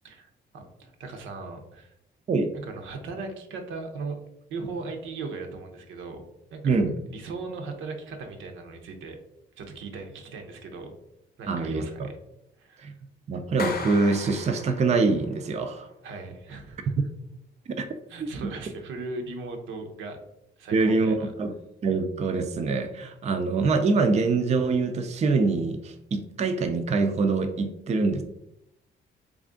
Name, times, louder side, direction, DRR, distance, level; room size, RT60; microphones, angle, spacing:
voice 1, 0.0-1.9 2.5-4.2 4.5-6.2 6.5-6.8 7.1-9.2 9.6-10.9 11.4-12.2 12.6-12.9 16.0-16.9 18.1-20.2 20.6-21.3, right 3 dB, 80° right, 4 dB, 0.7 m, -38 dB
voice 2, 6.6-6.9 11.5-12.1 12.8-12.9 13.3-15.9 17.8-17.9 18.4-18.5 20.7-21.5 21.8-28.2, right 3 dB, 35° right, 6 dB, 0.4 m, -24 dB
Clapping, 13.6-15.2, left 4 dB, 50° left, 0.6 m, -36 dB
3.3 x 2.4 x 3.7 m, 0.83 s
cardioid pair, 90°, 20 cm